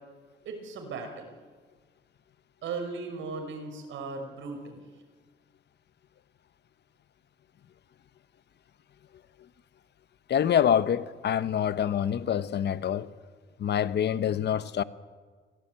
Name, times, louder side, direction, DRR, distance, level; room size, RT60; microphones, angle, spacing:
voice 1, 0.5-1.3 2.6-4.9, right 4 dB, 75° right, 5.5 m, -37 dB
voice 2, 10.3-13.1 13.6-14.8, left 9 dB, 60° left, 1.0 m, -26 dB
24.0 x 17.5 x 9.0 m
cardioid pair, 90°, 20 cm